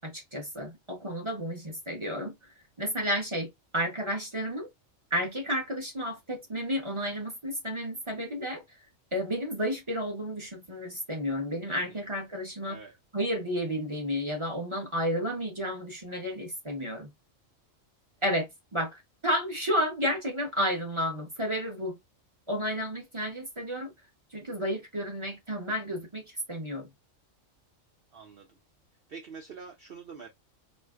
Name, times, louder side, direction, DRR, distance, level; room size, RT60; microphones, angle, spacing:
voice 1, 0.0-2.5 2.8-4.7 5.1-8.8 9.1-12.8 13.1-17.1 18.2-22.0 22.5-23.9 24.3-26.9, equal, 25° right, 0.9 m, -32 dB
voice 2, 12.7-13.0 28.1-28.6 29.1-30.3, right 5 dB, 55° right, 0.8 m, -46 dB
4.3 x 2.1 x 2.4 m
omnidirectional pair, 1.4 m